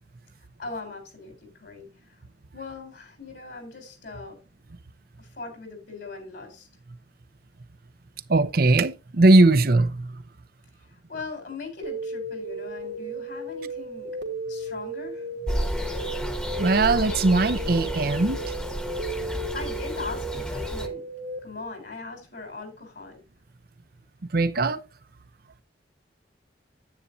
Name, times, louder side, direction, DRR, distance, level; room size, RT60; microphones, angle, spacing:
voice 1, 0.6-1.9 2.5-4.4 5.2-6.7 11.1-14.1 14.5-15.2 19.5-21.0 21.4-23.2, left 4 dB, 65° left, 3.8 m, -39 dB
voice 2, 8.3-9.9 16.6-18.4 24.3-24.8, right 2 dB, 55° right, 0.7 m, -19 dB
sound 1, 11.8-21.4, right 2 dB, 80° right, 2.2 m, -35 dB
sound 2, 15.5-20.9, equal, 5° left, 1.2 m, -31 dB
9.8 x 9.0 x 2.7 m
head